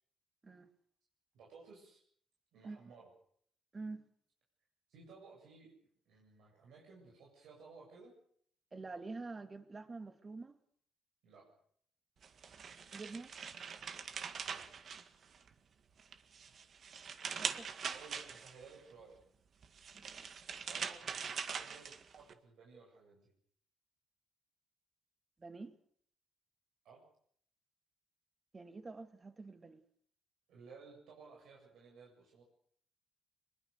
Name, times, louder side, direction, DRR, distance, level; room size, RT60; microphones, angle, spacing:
voice 1, 1.3-2.0 2.5-3.1 4.9-5.7 6.1-8.1 11.2-11.5 14.5-14.7 17.9-19.2 20.7-23.3 26.8-27.0 30.5-32.4, right 4 dB, 80° right, 7.9 m, -57 dB
voice 2, 3.7-4.1 8.7-10.6 12.9-13.3 17.4-17.7 19.9-20.1 25.4-25.8 28.5-29.8, right 3 dB, 30° right, 2.6 m, -47 dB
sound 1, 12.2-15.6 16.0-18.7 19.6-22.3, right 6 dB, 55° right, 1.9 m, -43 dB
25.0 x 21.5 x 6.7 m
cardioid pair, 90°, 0 cm